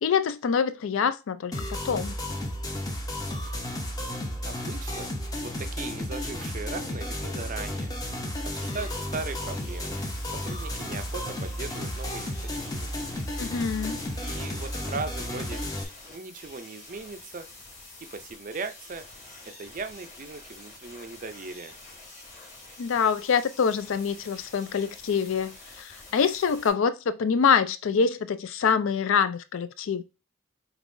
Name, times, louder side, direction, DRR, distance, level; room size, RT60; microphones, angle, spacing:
voice 1, 0.0-2.1 13.4-14.0 22.8-30.0, left 6 dB, 60° left, 0.4 m, -25 dB
sound 1, 1.5-15.8, left 1 dB, 15° left, 0.6 m, -33 dB
voice 2, 4.4-5.1 5.4-7.9 8.4-10.0 10.3-12.9 14.2-15.6 16.1-17.5 18.0-19.1 19.6-21.7, right 4 dB, 35° right, 0.4 m, -38 dB
sound 2, 8.5-26.7, left 2 dB, 30° left, 1.4 m, -47 dB
5.2 x 3.0 x 2.6 m
head